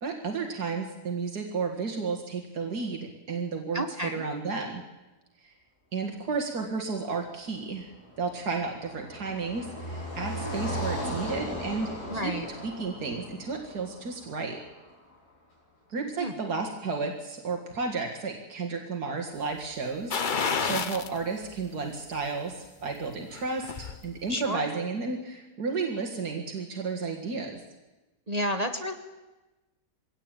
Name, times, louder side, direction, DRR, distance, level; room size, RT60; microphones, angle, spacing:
voice 1, 0.0-4.8 5.4-5.5 5.9-14.6 15.9-27.6, right 4 dB, 85° right, 2 dB, 2.4 m, -33 dB
voice 2, 3.7-4.2 12.1-12.5 16.2-16.3 24.3-24.6 28.3-28.9, equal, 25° right, 6 dB, 1.3 m, -30 dB
Car passing by, 7.6-14.9, equal, 80° left, 5.8 m, -37 dB
sound 1, 20.1-21.2 21.6-21.7 23.2-24.0 24.3-24.4, left 5 dB, 40° left, 0.9 m, -29 dB
22.5 x 17.0 x 9.0 m, 1.1 s
omnidirectional pair, 1.6 m